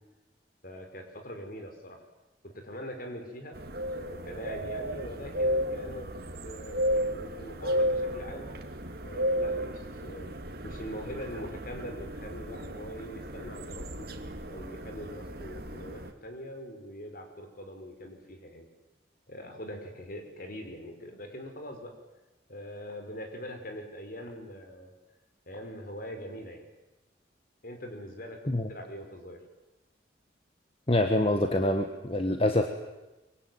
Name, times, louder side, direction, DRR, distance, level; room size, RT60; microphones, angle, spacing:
voice 1, 0.6-2.0 2.4-3.6 4.0-6.1 6.4-8.5 9.0-10.3 10.6-14.1 14.5-18.7 19.3-21.9 22.5-24.9 25.5-26.6 27.6-29.4, equal, 50° left, 5 dB, 5.2 m, -42 dB
sound 1, 3.5-16.1, equal, 55° right, 2.4 m, -34 dB
voice 2, 30.9-32.7, left 1 dB, 30° left, 6 dB, 1.6 m, -25 dB
24.5 x 24.0 x 9.4 m, 1.1 s
head